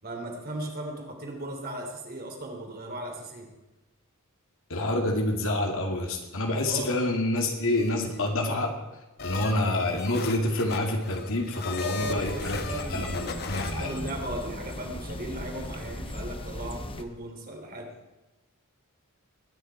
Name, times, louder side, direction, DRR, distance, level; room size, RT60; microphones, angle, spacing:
voice 1, 0.0-3.5 6.6-7.0 11.9-17.9, right 1 dB, 45° right, 2 dB, 3.0 m, -37 dB
voice 2, 4.7-8.7 9.2-14.1, left 1 dB, 65° left, 2 dB, 2.4 m, -27 dB
sound 1, 7.4-8.4 9.2-14.0, left 4 dB, 50° left, 1.1 m, -38 dB
sound 2, 12.0-17.0, left 1 dB, 25° left, 0.9 m, -38 dB
21.0 x 9.6 x 4.6 m, 1.1 s
head